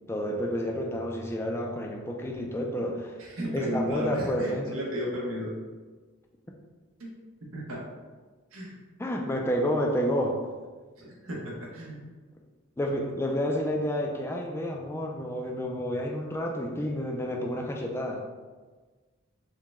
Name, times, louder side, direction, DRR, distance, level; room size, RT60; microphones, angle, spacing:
voice 1, 0.1-3.2 3.5-4.7 9.0-10.4 12.8-18.3, equal, 10° left, 0 dB, 0.3 m, -30 dB
voice 2, 3.2-5.5 7.0-7.1 7.5-7.8 8.5-8.8 11.0-12.0, equal, 85° right, -3 dB, 1.0 m, -34 dB
4.7 x 2.2 x 3.5 m, 1.4 s
head